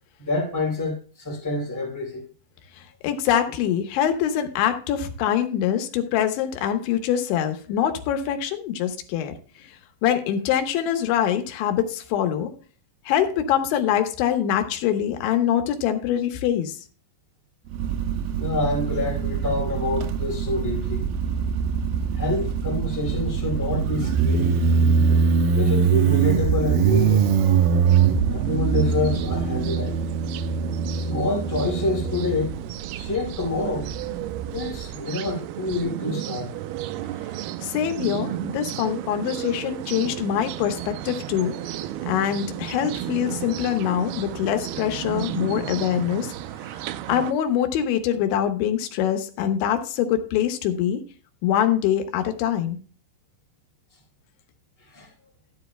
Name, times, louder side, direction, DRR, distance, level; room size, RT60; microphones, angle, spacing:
voice 1, 0.2-2.3 18.4-21.1 22.1-24.6 25.5-27.3 28.3-30.0 31.0-32.6 32.9-36.5 54.8-55.1, left 2 dB, 5° left, 3.7 m, -27 dB
voice 2, 3.0-9.3 10.0-12.5 13.1-16.8 37.6-41.6 42.1-46.3 47.1-51.0 51.4-52.8, left 10 dB, 90° left, 3.5 m, -24 dB
Motorcycle, 17.7-34.9, right 6 dB, 75° right, 2.2 m, -23 dB
sound 1, 27.9-47.3, right 12 dB, 90° right, 2.2 m, -34 dB
14.0 x 10.0 x 2.2 m
omnidirectional pair, 5.2 m